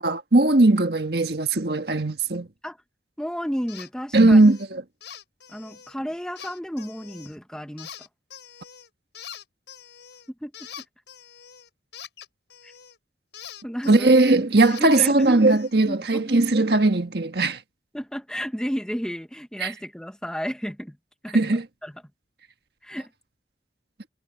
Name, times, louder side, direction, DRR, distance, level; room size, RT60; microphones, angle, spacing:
voice 1, 0.0-2.5 4.1-4.8 13.9-17.6 19.6-19.7 21.3-21.6, right 2 dB, 65° right, 1.6 m, -19 dB
voice 2, 3.2-4.4 5.5-8.1 10.4-10.7 12.6-12.7 13.6-14.1 14.8-15.3 15.8-16.3 17.9-21.0 21.2-21.5 21.8-21.9 22.8-23.1, equal, 5° left, 1.3 m, -32 dB
sound 1, 3.7-3.9 4.2-4.6 5.0-5.9 6.4-7.4 7.8-8.9 9.1-13.0 13.3-15.7, left 9 dB, 85° left, 5.4 m, -44 dB
head